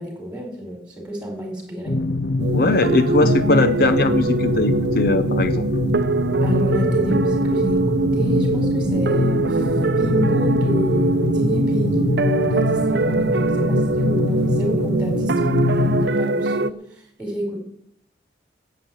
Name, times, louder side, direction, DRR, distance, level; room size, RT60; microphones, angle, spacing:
voice 1, 0.0-2.0 6.4-9.7 10.0-17.6, equal, 5° right, 2 dB, 4.5 m, -30 dB
sound 1, 1.9-16.1, left 2 dB, 80° left, 1.0 m, -24 dB
sound 2, 2.4-16.7, right 3 dB, 70° right, 0.6 m, -22 dB
voice 2, 2.5-5.6, left 2 dB, 55° left, 12 dB, 0.6 m, -20 dB
13.0 x 8.2 x 8.6 m, 0.70 s
head